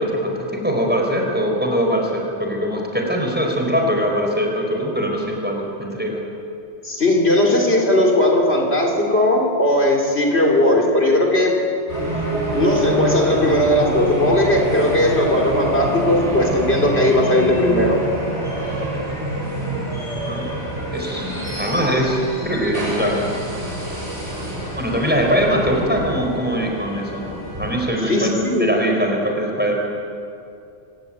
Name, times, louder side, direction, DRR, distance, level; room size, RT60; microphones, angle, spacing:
voice 1, 0.0-6.2 20.3-20.4 20.9-23.3 24.7-27.2 27.6-29.7, equal, 10° right, 0 dB, 4.7 m, -22 dB
voice 2, 6.8-11.5 12.5-18.0 28.0-28.7, left 1 dB, 60° left, 0 dB, 3.9 m, -17 dB
sound 1, 11.9-27.8, right 1 dB, 80° right, 8.6 m, -26 dB
26.0 x 17.0 x 9.2 m, 2.5 s
omnidirectional pair, 1.2 m